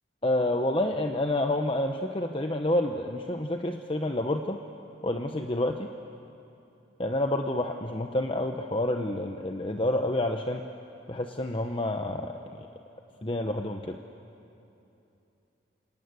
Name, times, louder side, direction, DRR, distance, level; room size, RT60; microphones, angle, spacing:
voice 1, 0.2-4.6 5.0-5.9 7.0-10.6 11.1-12.7 13.2-14.0, left 1 dB, 30° left, 4 dB, 0.9 m, -28 dB
28.0 x 26.0 x 8.2 m, 2.8 s
head